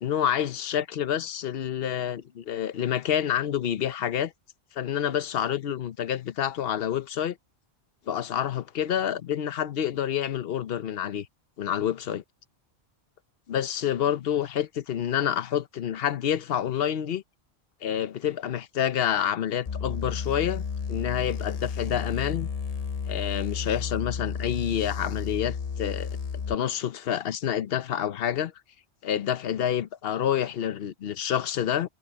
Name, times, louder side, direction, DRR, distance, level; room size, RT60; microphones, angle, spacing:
voice 1, 0.0-4.3 4.7-7.4 8.1-11.3 11.6-12.2 13.5-17.2 17.8-20.6 20.9-22.5 23.1-26.1 26.5-28.5 29.0-31.9, left 9 dB, 60° left, 1.0 m, -28 dB
sound 1, 19.7-26.5, left 6 dB, 40° left, 0.6 m, -32 dB
omnidirectional pair, 1.2 m